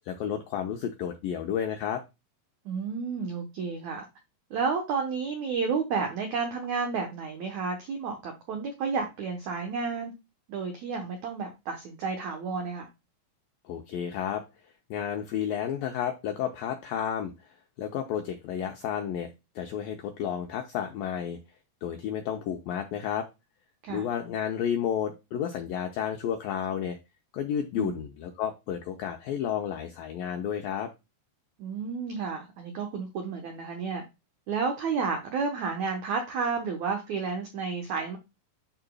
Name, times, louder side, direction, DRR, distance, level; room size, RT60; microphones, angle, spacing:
voice 1, 0.1-2.0 13.7-14.4 14.9-21.4 21.8-23.3 23.9-27.0 27.3-30.9, left 9 dB, 90° left, 4 dB, 2.0 m, -31 dB
voice 2, 2.6-4.0 4.5-10.1 10.5-12.9 23.8-24.1 27.8-28.0 31.6-34.0 34.5-38.2, right 5 dB, 90° right, 4 dB, 1.6 m, -31 dB
11.5 x 4.0 x 2.3 m, 0.24 s
omnidirectional pair, 5.0 m